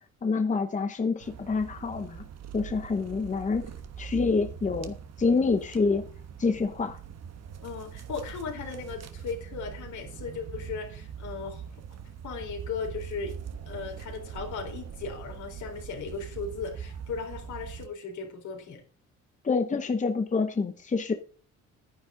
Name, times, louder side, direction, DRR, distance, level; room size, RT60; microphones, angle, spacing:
voice 1, 0.2-2.3 2.5-3.6 4.0-6.0 6.4-7.0 19.4-21.1, left 4 dB, 25° left, 0.8 m, -27 dB
sound 1, 1.2-17.9, right 8 dB, 55° right, 1.2 m, -42 dB
voice 2, 7.6-12.0 12.2-13.3 13.7-18.8, left 5 dB, 75° left, 4.0 m, -37 dB
10.5 x 10.0 x 3.8 m
cardioid pair, 90°, 30 cm